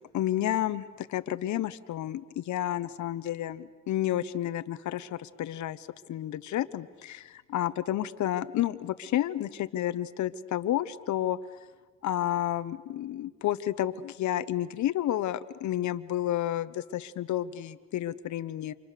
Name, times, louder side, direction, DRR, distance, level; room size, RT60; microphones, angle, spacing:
voice 1, 0.0-11.4 12.0-18.7, left 12 dB, 70° left, 13 dB, 1.0 m, -31 dB
29.0 x 26.0 x 6.7 m, 1.4 s
cardioid pair, 90°, 30 cm